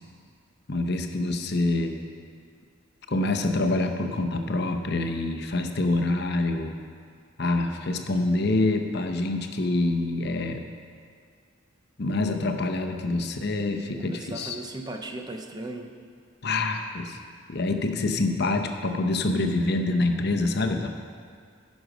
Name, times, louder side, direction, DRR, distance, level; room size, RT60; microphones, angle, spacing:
voice 1, 0.7-2.0 3.1-6.7 7.4-10.6 12.0-14.6 16.4-17.2 17.5-20.9, left 2 dB, 50° left, 5 dB, 0.7 m, -26 dB
voice 2, 14.0-15.9, right 2 dB, 20° right, 4 dB, 0.5 m, -37 dB
15.0 x 6.3 x 5.1 m, 2.2 s
head